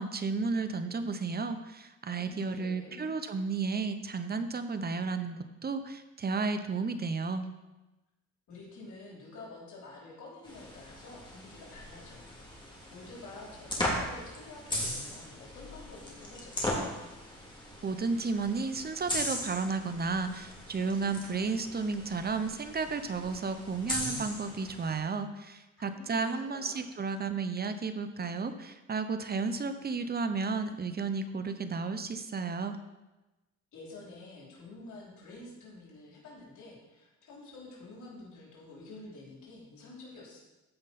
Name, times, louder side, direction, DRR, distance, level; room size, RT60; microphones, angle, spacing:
voice 1, 0.0-7.5 17.8-32.8, right 4 dB, 30° right, 9 dB, 0.9 m, -33 dB
voice 2, 2.1-3.1 8.5-12.3 12.9-17.0 25.8-26.3 26.5-26.9 33.7-40.4, left 2 dB, 75° left, -4 dB, 3.3 m, -49 dB
sound 1, 10.4-25.0, left 1 dB, 15° left, 2.9 m, -38 dB
14.5 x 5.2 x 4.3 m, 1.1 s
cardioid pair, 90°, 30 cm